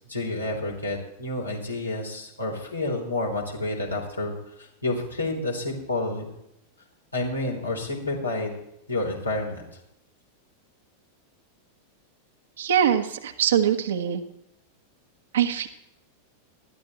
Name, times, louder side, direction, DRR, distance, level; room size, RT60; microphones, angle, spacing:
voice 1, 0.1-4.3 4.6-6.3 7.1-8.6 8.9-9.6, left 2 dB, 85° left, -1 dB, 3.8 m, -29 dB
voice 2, 12.6-14.2 15.3-15.7, right 9 dB, 60° right, 7 dB, 1.3 m, -23 dB
19.5 x 13.5 x 3.1 m, 0.82 s
figure-of-eight pair, 90°, 0 cm